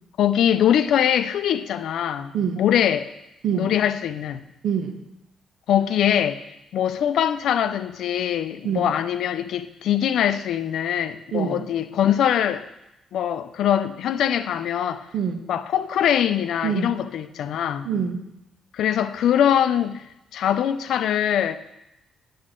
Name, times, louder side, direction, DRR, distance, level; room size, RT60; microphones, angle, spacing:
voice 1, 0.2-3.1 3.5-4.4 5.7-6.4 6.7-12.7 13.1-15.1 15.5-17.9 18.7-20.0 20.3-21.6, left 10 dB, 75° left, 0.4 m, -22 dB
voice 2, 2.3-2.6 3.4-3.8 4.6-5.0 8.6-8.9 11.3-11.7 15.1-15.4 16.6-16.9 17.8-18.2, right 7 dB, 70° right, 1.0 m, -25 dB
8.4 x 7.9 x 3.7 m
cardioid pair, 90°, 0 cm